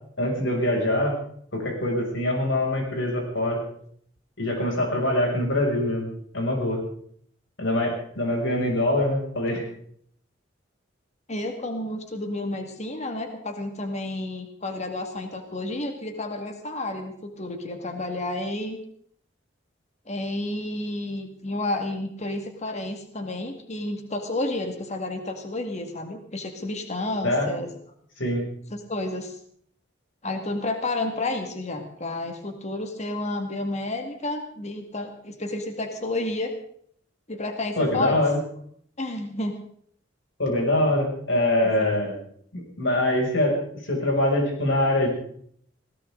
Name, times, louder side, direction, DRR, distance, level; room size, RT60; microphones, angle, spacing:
voice 1, 0.2-1.1 1.5-3.6 4.4-6.8 7.6-9.6 27.2-27.5 28.2-28.4 37.8-38.4 40.4-42.2 42.5-43.6 43.8-45.1, left 1 dB, 80° left, 0 dB, 6.9 m, -24 dB
voice 2, 11.3-18.8 20.1-27.7 28.9-29.4 30.2-36.5 37.3-38.2 39.0-39.6 41.6-41.9, left 2 dB, 35° left, 5 dB, 2.1 m, -31 dB
20.0 x 18.0 x 3.9 m, 0.63 s
head